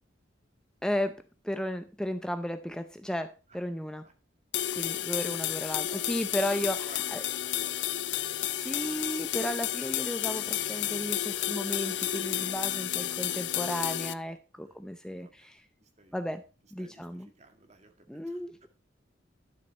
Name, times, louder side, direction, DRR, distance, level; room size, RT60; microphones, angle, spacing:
voice 1, 0.8-4.0 4.7-7.2 8.5-15.6 16.1-16.4 16.7-17.3 18.1-18.7, equal, 5° left, 8 dB, 0.5 m, -34 dB
sound 1, 4.5-14.1, left 12 dB, 65° left, 0.6 m, -31 dB
voice 2, 5.2-7.7 12.7-13.2 14.6-14.8 15.2-15.5 15.8-16.2 16.6-18.7, right 2 dB, 35° right, 6 dB, 2.0 m, -56 dB
12.0 x 7.3 x 4.3 m, 0.33 s
head